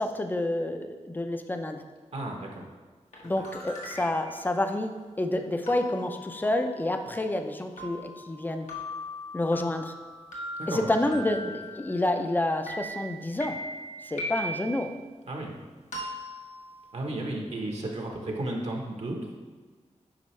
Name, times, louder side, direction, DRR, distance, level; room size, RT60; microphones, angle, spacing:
voice 1, 0.0-1.8 3.2-8.7 9.3-9.9 10.7-13.6 14.1-14.9, left 1 dB, 15° left, 6 dB, 0.5 m, -29 dB
voice 2, 2.1-2.7 3.2-3.5 10.6-11.2 15.3-15.5 16.9-19.3, right 1 dB, 65° right, 0 dB, 1.1 m, -34 dB
sound 1, 3.1-4.4 5.7-12.3 12.7-14.8 15.9-17.2, equal, 80° left, 1.5 m, -40 dB
8.7 x 5.3 x 3.2 m, 1.4 s
wide cardioid pair, 120°, 12 cm